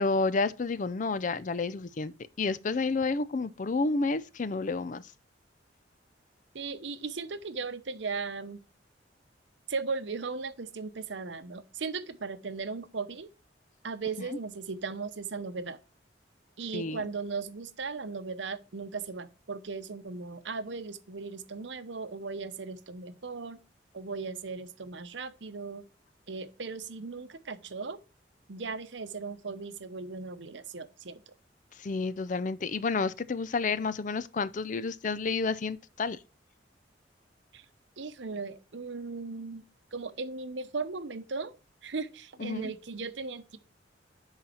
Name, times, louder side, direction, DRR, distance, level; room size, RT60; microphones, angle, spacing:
voice 1, 0.0-5.0 16.7-17.0 31.8-36.2 42.4-42.7, left 4 dB, 45° left, 0.5 m, -30 dB
voice 2, 6.5-8.6 9.7-13.3 13.8-15.8 16.6-23.6 23.9-25.8 26.3-28.0 28.5-31.3 37.5-37.6 38.0-39.6 39.9-41.5 41.8-43.6, right 4 dB, 80° right, 0.8 m, -37 dB
10.5 x 4.1 x 4.2 m
head